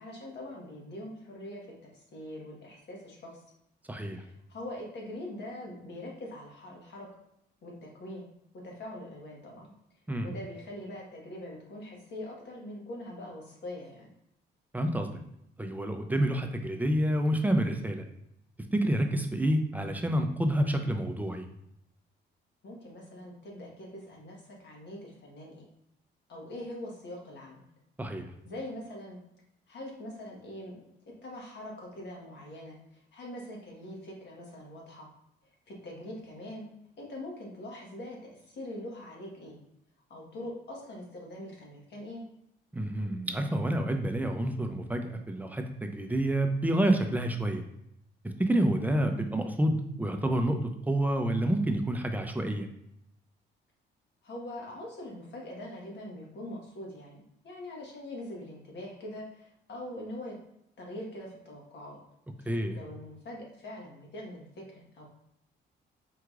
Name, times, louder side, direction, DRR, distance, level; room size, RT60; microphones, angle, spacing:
voice 1, 0.0-1.7 1.9-3.4 4.0-7.1 7.6-8.2 8.5-9.7 10.2-14.1 22.6-25.7 26.3-27.6 28.4-29.2 29.7-30.8 31.2-35.1 35.7-36.7 37.0-39.6 40.1-42.2 54.2-60.4 60.8-62.0 62.4-65.1, left 1 dB, 60° left, -2 dB, 1.3 m, -43 dB
voice 2, 3.9-4.2 10.1-10.3 14.7-15.2 15.6-18.0 18.7-21.5 28.0-28.3 42.7-47.6 48.2-50.6 50.9-52.7 62.5-62.8, right 1 dB, 10° right, 5 dB, 0.5 m, -28 dB
4.7 x 2.9 x 2.4 m, 0.78 s
cardioid pair, 90°, 20 cm